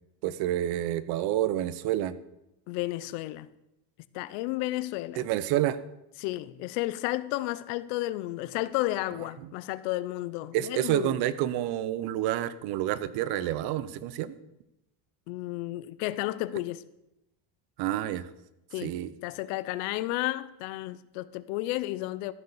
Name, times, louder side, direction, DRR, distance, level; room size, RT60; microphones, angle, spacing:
voice 1, 0.2-2.2 5.2-5.8 10.5-14.3 17.8-18.3 18.8-19.1, right 13 dB, 60° right, 0.9 m, -28 dB
voice 2, 2.7-3.5 4.1-5.3 6.2-11.2 15.3-16.8 18.7-18.9 19.2-22.3, left 17 dB, 80° left, 0.8 m, -32 dB
14.0 x 6.7 x 7.2 m
cardioid pair, 145°, 43 cm